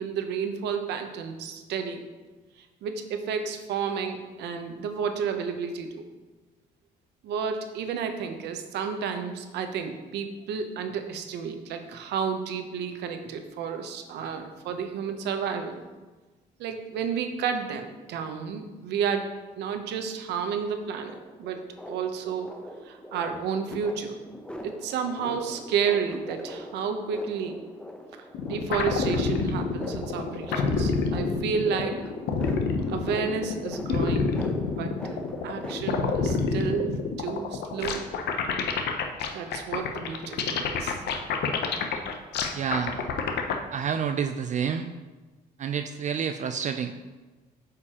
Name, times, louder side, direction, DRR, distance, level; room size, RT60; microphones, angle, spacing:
voice 1, 0.0-2.0 2.8-6.0 7.2-15.8 16.6-19.3 19.6-22.5 22.9-24.1 24.6-27.6 28.2-32.0 32.9-34.3 34.7-35.2 35.4-38.1 39.3-41.0, right 6 dB, 85° right, 7 dB, 0.7 m, -31 dB
sound 1, 21.0-36.3, equal, 5° left, 0.7 m, -42 dB
sound 2, 28.3-43.6, left 5 dB, 75° left, 0.7 m, -27 dB
voice 2, 42.5-43.0 43.7-44.9 45.6-47.0, right 7 dB, 45° right, 8 dB, 0.4 m, -29 dB
8.3 x 5.1 x 2.9 m, 1.3 s
cardioid pair, 90°, 17 cm